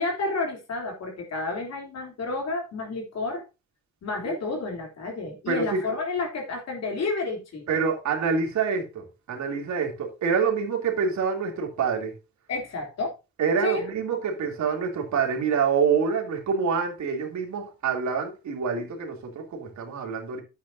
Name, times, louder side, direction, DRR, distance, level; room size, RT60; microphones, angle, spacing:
voice 1, 0.0-3.4 4.0-7.6 12.5-13.1 13.6-13.9, left 3 dB, 55° left, 3.4 m, -30 dB
voice 2, 5.5-5.8 7.7-12.1 13.4-20.4, right 6 dB, 70° right, 3.1 m, -26 dB
10.5 x 8.4 x 2.8 m
cardioid pair, 90°, 30 cm